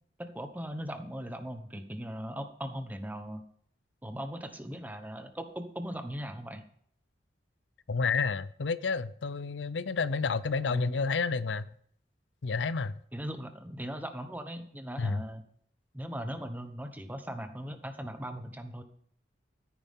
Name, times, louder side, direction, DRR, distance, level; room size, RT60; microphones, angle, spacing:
voice 1, 0.2-3.4 4.0-6.7 10.7-11.0 13.1-15.4 15.9-18.8, equal, 10° right, 8 dB, 1.0 m, -39 dB
voice 2, 7.9-11.7 12.4-13.0 15.0-15.2, left 4 dB, 90° left, 16 dB, 0.6 m, -30 dB
14.0 x 9.3 x 3.7 m, 0.63 s
head